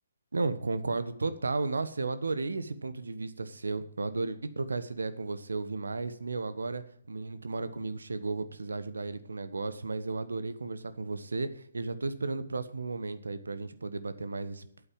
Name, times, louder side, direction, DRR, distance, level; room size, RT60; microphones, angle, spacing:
voice 1, 0.3-14.7, right 3 dB, 75° right, 12 dB, 1.2 m, -34 dB
8.6 x 8.3 x 8.9 m, 0.64 s
figure-of-eight pair, 135°, 0 cm